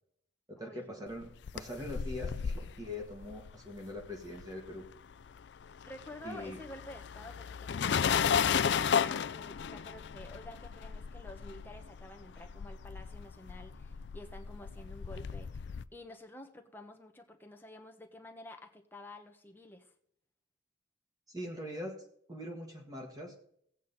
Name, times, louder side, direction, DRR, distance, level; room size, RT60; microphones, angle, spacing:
voice 1, 0.5-4.8 6.2-6.6 21.3-22.0 22.3-23.3, left 1 dB, 20° right, 1 dB, 1.7 m, -42 dB
sound 1, 1.2-4.9 5.1-15.9, left 7 dB, 65° left, 0.4 m, -34 dB
voice 2, 5.9-19.9, left 1 dB, 10° left, 3 dB, 1.1 m, -50 dB
15.5 x 8.5 x 4.2 m, 0.69 s
head